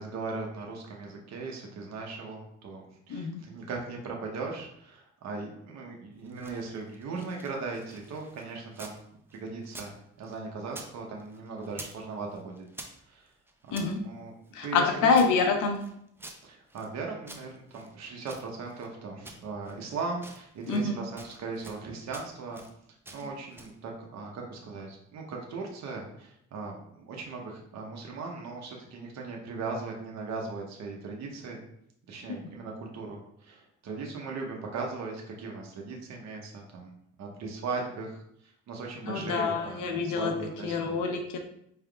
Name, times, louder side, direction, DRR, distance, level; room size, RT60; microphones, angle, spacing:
voice 1, 0.0-8.9 9.3-12.7 13.1-13.3 13.7-14.3 14.6-15.1 16.4-22.6 23.1-31.6 32.1-36.9 37.2-41.1, right 4 dB, 65° right, 0 dB, 0.8 m, -38 dB
voice 2, 3.1-3.4 13.7-14.0 14.5-15.8 20.7-21.0 39.0-40.3 40.6-41.4, left 4 dB, 85° left, 5 dB, 0.7 m, -26 dB
sound 1, 6.1-9.0 9.3-10.9 11.2-12.0 12.3-13.9 14.4-16.9 17.2-18.9 19.2-19.8 20.1-20.9 21.2-21.8 22.1-22.7 23.0-23.8, right 1 dB, 10° right, 0.5 m, -48 dB
4.7 x 3.4 x 2.3 m, 0.72 s
cardioid pair, 90°, 30 cm